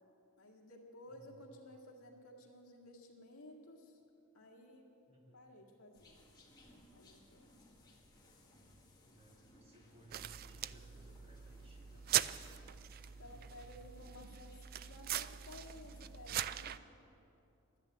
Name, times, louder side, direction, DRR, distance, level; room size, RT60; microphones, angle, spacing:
voice 1, 0.4-4.0 4.3-4.9 5.3-6.2 6.9-7.5 13.2-16.7, left 1 dB, 70° left, 0 dB, 1.9 m, -55 dB
voice 2, 1.1-1.4 5.1-5.5 9.0-12.2 13.0-13.9, equal, 25° right, 0 dB, 1.8 m, -63 dB
sound 1, 5.9-16.7, left 1 dB, 20° left, 1.9 m, -63 dB
sound 2, 10.1-16.8, right 11 dB, 40° right, 0.3 m, -41 dB
12.5 x 10.5 x 9.3 m, 2.8 s
head